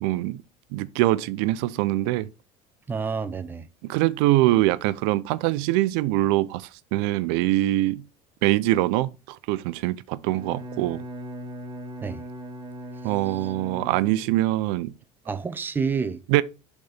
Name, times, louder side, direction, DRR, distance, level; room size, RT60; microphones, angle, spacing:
voice 1, 0.0-0.4 0.7-2.3 3.8-8.0 8.4-11.0 13.0-14.9 16.3-16.4, right 16 dB, 85° right, 0.5 m, -23 dB
voice 2, 2.9-3.7 12.0-12.2 13.3-13.5 15.3-16.2, right 5 dB, 15° right, 0.6 m, -29 dB
Bowed string instrument, 10.2-14.5, equal, 35° right, 2.2 m, -39 dB
10.5 x 4.1 x 3.4 m
cardioid pair, 140°, 14 cm